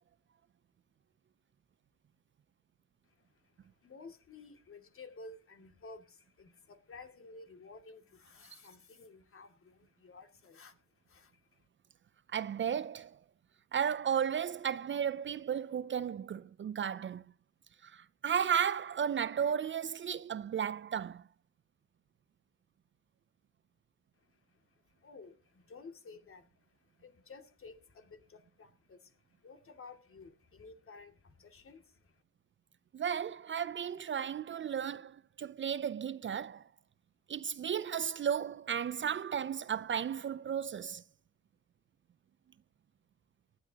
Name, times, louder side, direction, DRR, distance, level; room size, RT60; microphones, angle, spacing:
voice 1, 3.0-11.7 24.2-32.2, left 3 dB, 45° left, 2.5 m, -54 dB
voice 2, 12.3-13.2 13.7-17.2 17.8-21.2 32.9-36.6 37.3-41.0, right 8 dB, 40° right, 0.5 m, -34 dB
18.5 x 12.0 x 2.9 m
cardioid pair, 90°, 30 cm